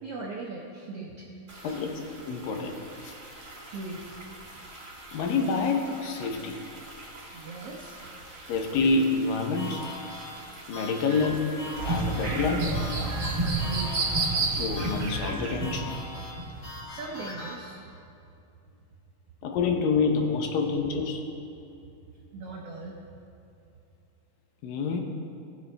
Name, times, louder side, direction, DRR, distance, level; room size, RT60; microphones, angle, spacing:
voice 1, 0.0-1.3 1.6-1.8 3.7-4.0 7.3-8.0 13.4-14.0 14.4-14.5 16.8-17.8 21.8-23.0, right 3 dB, 80° right, -2 dB, 1.3 m, -39 dB
sound 1, 1.5-15.1, right 1 dB, 20° right, 1.3 m, -46 dB
voice 2, 1.6-2.8 3.0-3.1 5.1-6.6 8.5-9.8 10.7-11.6 11.9-12.7 14.5-15.9 19.4-21.2 24.6-25.0, left 4 dB, 75° left, 3 dB, 2.5 m, -27 dB
sound 2, 9.5-17.6, left 2 dB, 45° left, 3.8 m, -41 dB
sound 3, 11.7-16.7 17.1-17.2, right 2 dB, 55° right, 1.4 m, -29 dB
19.5 x 7.4 x 3.4 m, 2.6 s
omnidirectional pair, 4.2 m